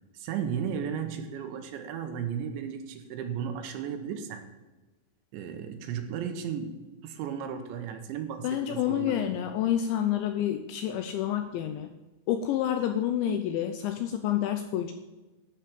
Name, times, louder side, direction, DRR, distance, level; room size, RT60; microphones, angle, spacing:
voice 1, 0.1-4.5 5.3-6.8 7.0-9.3, right 7 dB, 75° right, 6 dB, 3.0 m, -34 dB
voice 2, 8.4-11.9 12.3-14.9, left 10 dB, 85° left, 7 dB, 2.7 m, -28 dB
12.0 x 5.8 x 7.6 m, 1.1 s
omnidirectional pair, 5.9 m